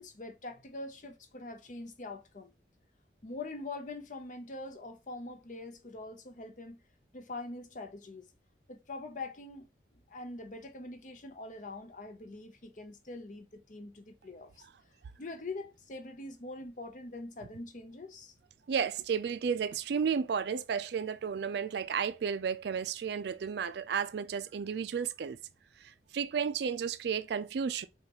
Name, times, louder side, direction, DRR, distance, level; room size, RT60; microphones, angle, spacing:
voice 1, 0.0-2.5 3.2-6.8 7.1-8.2 8.7-9.7 10.1-14.5 15.2-18.3, left 2 dB, 40° left, 0.7 m, -43 dB
voice 2, 18.7-25.4 25.8-27.9, right 6 dB, 60° right, 0.3 m, -33 dB
6.1 x 2.4 x 2.9 m
head